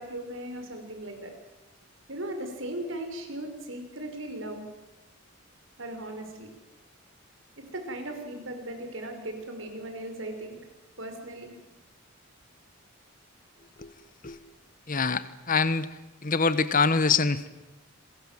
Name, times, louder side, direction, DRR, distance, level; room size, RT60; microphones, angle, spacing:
voice 1, 0.0-1.3 2.1-4.7 5.8-6.5 7.6-10.6 11.0-11.5, right 1 dB, 65° right, 5 dB, 5.5 m, -37 dB
voice 2, 14.9-15.9 16.2-17.5, left 4 dB, 40° left, 14 dB, 1.3 m, -25 dB
28.0 x 22.0 x 7.6 m, 0.99 s
head